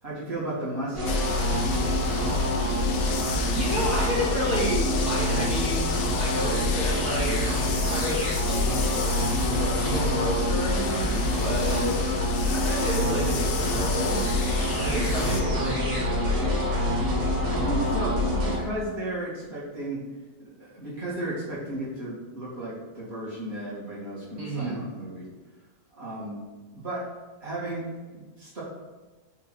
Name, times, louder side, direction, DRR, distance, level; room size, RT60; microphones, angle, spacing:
voice 1, 0.0-1.5 14.7-15.0 17.5-20.0 20.4-25.3 25.9-26.4 26.7-27.0 27.4-27.8 28.1-28.6, right 1 dB, 35° right, -9 dB, 2.6 m, -34 dB
sound 1, 0.9-18.6, left 1 dB, 80° right, 2.5 m, -26 dB
sound 2, 1.1-15.4, left 8 dB, 80° left, 0.6 m, -35 dB
voice 2, 3.5-5.9 6.2-9.1 9.4-12.0 12.4-14.2 14.8-16.5 24.3-24.8, right 1 dB, 60° right, -8 dB, 2.8 m, -31 dB
5.5 x 4.8 x 6.1 m, 1.3 s
omnidirectional pair, 1.9 m